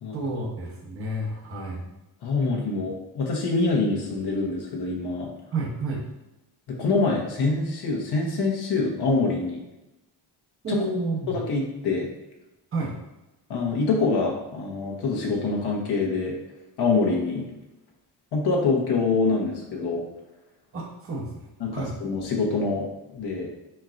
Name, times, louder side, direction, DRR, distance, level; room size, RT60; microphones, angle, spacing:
voice 1, 0.1-1.8 5.5-6.1 10.6-11.4 12.7-13.0 20.7-21.9, right 2 dB, 30° right, -2 dB, 0.9 m, -30 dB
voice 2, 2.2-5.3 6.7-9.6 10.7-10.8 11.3-12.1 13.5-16.3 16.8-17.5 18.3-20.0 21.6-22.9 23.1-23.5, left 3 dB, 65° left, -2 dB, 1.1 m, -25 dB
4.6 x 4.4 x 2.5 m, 0.97 s
wide cardioid pair, 160°, 42 cm